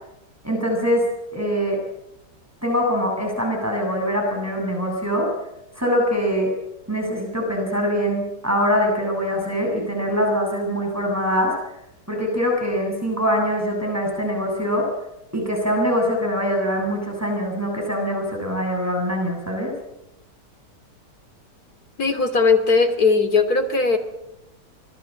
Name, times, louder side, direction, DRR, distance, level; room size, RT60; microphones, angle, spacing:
voice 1, 0.4-1.8 2.6-5.3 5.7-6.5 6.9-11.5 12.1-14.9 15.3-19.7, equal, 10° right, 0 dB, 7.9 m, -23 dB
voice 2, 22.0-24.0, left 4 dB, 60° left, 7 dB, 3.5 m, -18 dB
26.5 x 21.0 x 7.8 m, 0.85 s
omnidirectional pair, 1.8 m